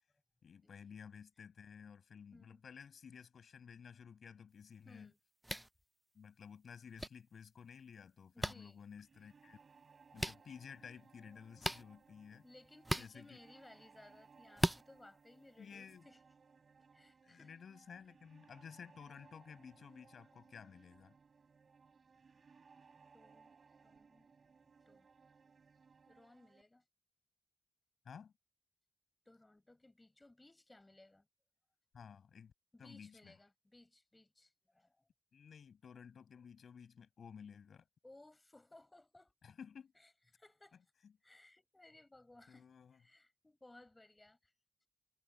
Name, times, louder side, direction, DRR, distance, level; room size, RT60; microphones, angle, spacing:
voice 1, 0.4-5.1 6.1-9.6 10.1-12.5 12.9-13.4 15.6-16.1 17.2-21.1 28.0-28.3 31.9-32.5 32.8-33.3 35.3-37.9 39.4-39.9 41.0-41.1 42.5-43.0, left 7 dB, 60° left, 7.7 m, -54 dB
voice 2, 2.3-2.6 4.9-5.2 8.3-8.8 12.4-16.2 16.9-17.6 23.1-24.3 24.9-25.1 26.1-26.8 29.3-31.3 32.7-35.0 38.0-39.3 40.0-40.8 41.2-42.7 42.9-44.5, left 2 dB, 15° left, 5.4 m, -62 dB
sound 1, 5.4-5.7 7.0-7.1 8.4-8.5 10.2-10.4 11.6-11.8 12.8-13.1 14.6-14.8, right 1 dB, 5° right, 0.3 m, -35 dB
sound 2, 9.0-26.6, right 5 dB, 40° right, 6.4 m, -65 dB
wide cardioid pair, 165°, 0 cm